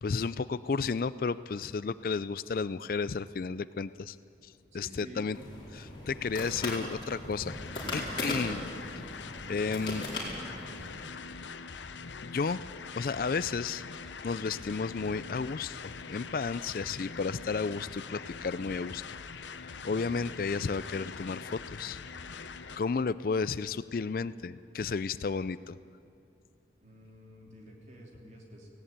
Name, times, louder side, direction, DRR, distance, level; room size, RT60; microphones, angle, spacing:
voice 1, 0.0-4.2 4.4-5.4 5.7-7.6 7.9-8.6 9.0-9.1 9.5-10.1 12.2-12.6 12.9-13.8 14.2-19.0 19.6-22.0 22.3-22.5 22.8-25.8, left 4 dB, 50° left, 16 dB, 0.4 m, -33 dB
voice 2, 4.7-5.3 26.8-28.7, equal, 40° right, 0 dB, 3.3 m, -50 dB
sound 1, 5.3-10.9, left 1 dB, 25° left, 4.4 m, -39 dB
sound 2, 7.5-22.8, left 5 dB, 90° left, 0.8 m, -43 dB
18.0 x 17.0 x 8.8 m, 2.6 s
head